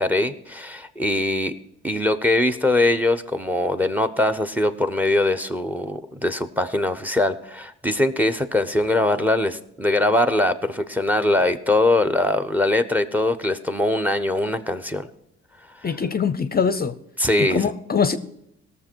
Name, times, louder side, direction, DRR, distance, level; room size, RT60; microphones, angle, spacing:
voice 1, 0.0-1.5 1.8-15.1 15.8-15.9 17.2-17.7, left 1 dB, 5° right, 0.8 m, -22 dB
voice 2, 15.8-17.0 17.4-18.2, left 6 dB, 30° left, 0.6 m, -23 dB
18.0 x 7.0 x 4.5 m
cardioid pair, 90°, 30 cm